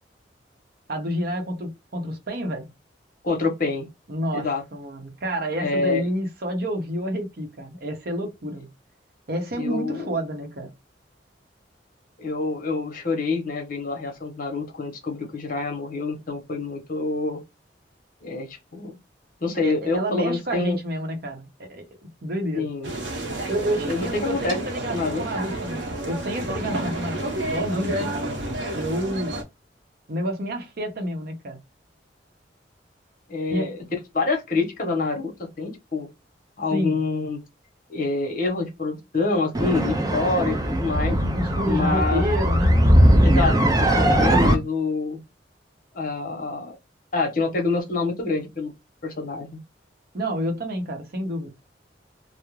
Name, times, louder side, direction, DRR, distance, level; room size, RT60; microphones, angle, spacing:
voice 1, 0.9-2.7 4.1-8.7 9.3-10.7 19.6-22.7 23.5-28.3 28.7-29.4 30.1-31.6 33.5-33.8 36.7-37.0 41.3-42.8 50.1-51.5, equal, 60° right, 0.8 m, -29 dB
voice 2, 3.2-3.9 4.3-4.6 5.6-6.0 9.5-10.1 12.2-17.4 18.2-18.9 19.4-20.8 22.5-22.9 23.8-24.6 24.9-25.2 33.3-33.8 34.1-36.1 36.6-37.4 37.9-41.2 41.7-42.2 43.2-45.2 45.9-46.8 47.1-48.7 49.0-49.6, left 3 dB, 50° left, 0.9 m, -26 dB
sound 1, 22.8-29.4, right 1 dB, 85° right, 0.8 m, -30 dB
sound 2, 39.5-44.5, equal, 20° right, 0.5 m, -19 dB
2.4 x 2.0 x 3.0 m
head